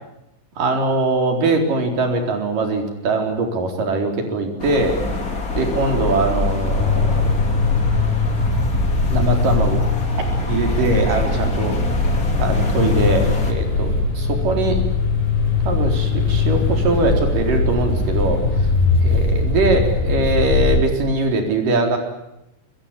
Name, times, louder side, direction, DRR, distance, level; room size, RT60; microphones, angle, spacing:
voice 1, 0.6-5.0 5.5-7.3 9.1-9.8 10.5-11.8 12.4-14.8 15.7-18.7 19.0-22.0, right 2 dB, 45° right, 4 dB, 5.3 m, -21 dB
sound 1, 4.6-13.5, left 3 dB, 20° left, 2.6 m, -26 dB
sound 2, 6.6-20.9, left 3 dB, 50° left, 7.6 m, -20 dB
23.0 x 22.5 x 10.0 m, 0.85 s
omnidirectional pair, 5.8 m